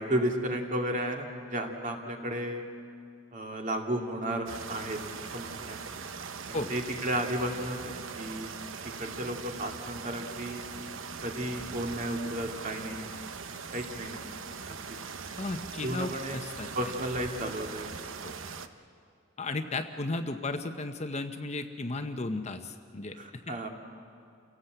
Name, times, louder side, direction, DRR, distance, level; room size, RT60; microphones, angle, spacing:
voice 1, 0.0-2.6 3.3-5.0 5.3-5.8 6.5-8.5 9.0-10.6 11.2-13.0 13.7-14.4 14.7-15.0 15.8-16.4 16.7-18.0 23.2-23.7, right 1 dB, 40° right, 2 dB, 2.3 m, -33 dB
sound 1, 4.5-18.7, right 5 dB, 80° right, 0.9 m, -41 dB
voice 2, 15.4-16.7 18.2-18.4 19.4-23.5, left 2 dB, 35° left, 7 dB, 0.9 m, -35 dB
29.0 x 17.5 x 8.0 m, 2.4 s
head